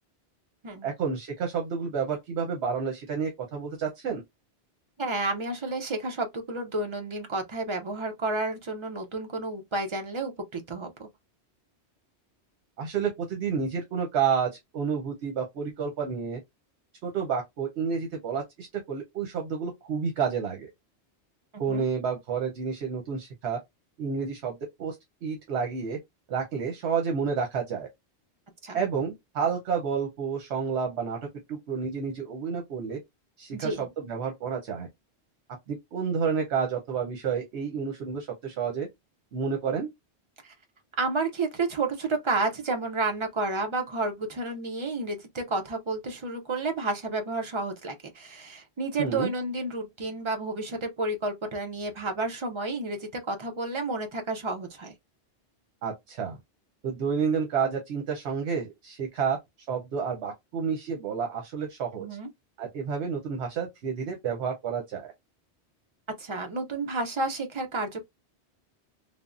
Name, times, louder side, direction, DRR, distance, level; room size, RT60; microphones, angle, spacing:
voice 1, 0.8-4.2 12.8-16.4 17.0-20.7 21.6-23.6 24.0-25.0 25.2-26.0 26.3-27.9 28.7-33.0 33.4-34.9 35.7-38.9 39.3-39.9 49.0-49.3 55.8-56.4 56.8-59.4 59.7-62.1 62.6-65.1, right 6 dB, 75° right, 1.0 m, -30 dB
voice 2, 5.0-11.1 21.5-21.8 28.6-28.8 33.5-33.9 40.4-40.5 41.0-54.9 62.0-62.3 66.2-68.0, right 3 dB, 35° right, 0.5 m, -31 dB
3.4 x 2.0 x 2.4 m
omnidirectional pair, 1.1 m